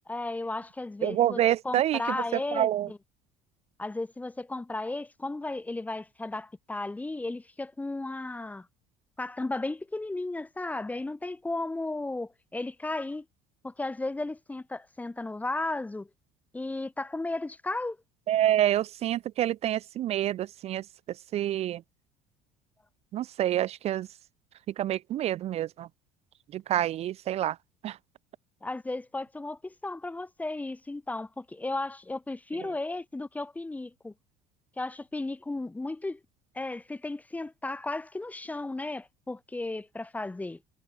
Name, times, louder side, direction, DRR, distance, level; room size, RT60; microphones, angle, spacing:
voice 1, 0.1-1.4 1.6-3.0 3.8-8.7 9.2-13.2 13.6-16.1 16.5-18.0 28.6-34.1 34.8-36.2 36.5-40.6, left 2 dB, 10° left, 0.7 m, -34 dB
voice 2, 1.0-2.9 18.3-21.8 23.1-24.1 24.7-25.9 26.5-27.6 27.8-28.0 32.5-32.7, right 12 dB, 45° right, 0.4 m, -28 dB
supercardioid pair, 100°, 15 cm